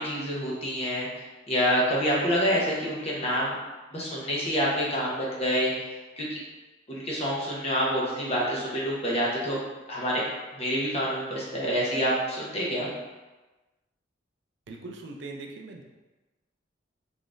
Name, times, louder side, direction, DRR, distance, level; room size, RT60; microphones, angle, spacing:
voice 1, 0.0-3.6 3.9-5.9 6.2-6.4 6.9-9.6 9.9-10.2 10.5-12.9, equal, 35° left, -5 dB, 0.9 m, -27 dB
voice 2, 14.7-15.8, right 3 dB, 65° right, 1 dB, 0.5 m, -40 dB
3.7 x 3.5 x 2.5 m, 1.1 s
head